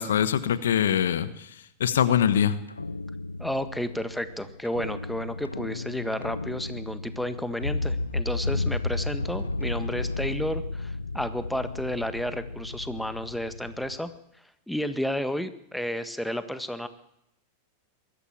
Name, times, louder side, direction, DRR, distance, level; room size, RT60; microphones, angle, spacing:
voice 1, 0.0-1.5 1.8-2.6, left 9 dB, 70° left, 14 dB, 1.2 m, -23 dB
sound 1, 2.7-14.0, left 2 dB, 90° left, 0.8 m, -33 dB
voice 2, 3.4-14.1 14.7-16.9, left 1 dB, ahead, 11 dB, 1.6 m, -32 dB
21.5 x 14.0 x 8.8 m, 0.77 s
figure-of-eight pair, 90°, 0 cm